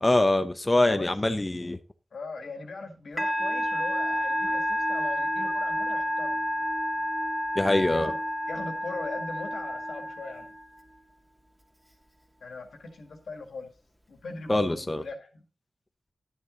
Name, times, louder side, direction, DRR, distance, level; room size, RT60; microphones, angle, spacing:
voice 1, 0.0-1.8 7.6-8.1 14.5-15.0, left 2 dB, 25° left, 0.7 m, -24 dB
voice 2, 2.1-6.6 7.7-8.2 8.5-10.5 12.4-13.7 14.1-15.4, left 3 dB, 85° left, 1.8 m, -40 dB
Musical instrument, 3.2-10.8, equal, 10° right, 2.1 m, -30 dB
11.0 x 6.4 x 3.8 m
cardioid pair, 55°, 0 cm